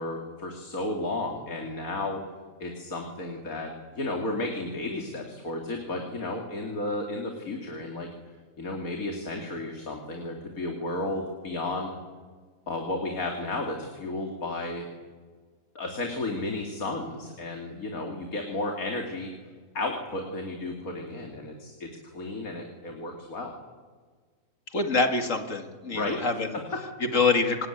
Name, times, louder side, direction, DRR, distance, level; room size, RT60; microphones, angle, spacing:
voice 1, 0.0-2.2 2.6-8.1 8.6-12.0 12.7-14.9 15.7-19.3 19.7-23.5 25.9-26.2 26.5-26.8, left 2 dB, 85° left, 2 dB, 3.0 m, -33 dB
voice 2, 24.7-26.6 27.0-27.7, left 3 dB, 65° left, 6 dB, 2.6 m, -25 dB
27.0 x 20.5 x 9.3 m, 1.5 s
omnidirectional pair, 1.5 m